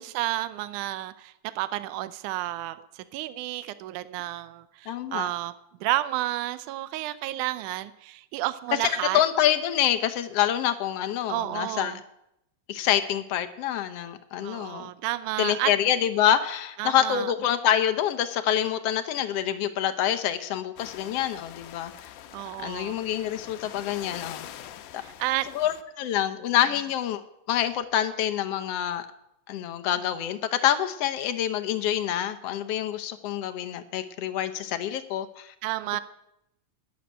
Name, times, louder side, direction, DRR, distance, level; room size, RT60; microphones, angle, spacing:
voice 1, 0.0-5.5 5.8-9.2 11.3-12.0 14.4-15.7 16.8-17.3 22.3-23.0 25.0-25.5 35.6-36.0, right 16 dB, 80° right, 13 dB, 2.1 m, -31 dB
voice 2, 4.9-5.3 8.8-11.9 12.7-14.9 15.4-22.1 22.6-24.5 24.9-25.0 25.5-29.1 29.5-35.5, left 10 dB, 70° left, 10 dB, 1.5 m, -26 dB
sound 1, 20.8-25.8, left 11 dB, 85° left, 2.4 m, -44 dB
11.5 x 9.5 x 10.0 m, 0.82 s
omnidirectional pair, 3.7 m